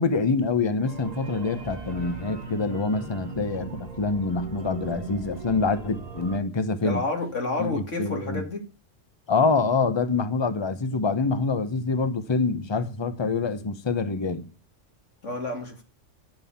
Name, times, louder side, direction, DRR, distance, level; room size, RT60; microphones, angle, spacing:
voice 1, 0.0-7.0 7.6-8.4 9.3-14.5, left 4 dB, 25° left, 0.8 m, -26 dB
sound 1, 0.8-6.4, right 5 dB, 35° right, 1.3 m, -39 dB
voice 2, 6.8-8.6 15.2-15.8, left 2 dB, 75° left, 2.8 m, -30 dB
10.5 x 5.6 x 7.1 m
omnidirectional pair, 1.3 m